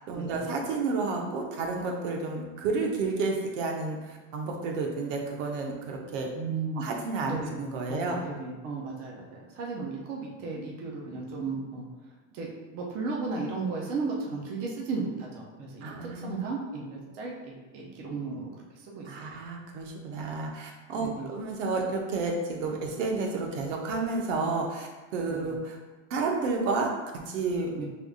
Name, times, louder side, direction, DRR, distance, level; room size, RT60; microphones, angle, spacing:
voice 1, 0.1-6.3 6.8-8.2 15.8-16.4 19.1-25.8 26.1-26.9 27.3-27.8, right 3 dB, 80° right, 1 dB, 0.9 m, -31 dB
voice 2, 6.3-6.9 7.3-7.6 7.9-11.9 12.3-18.4 19.0-19.3 21.0-21.2 25.3-25.4 27.8-27.9, right 4 dB, 25° right, -2 dB, 0.4 m, -35 dB
5.0 x 3.5 x 2.3 m, 1.2 s
supercardioid pair, 175°, 37 cm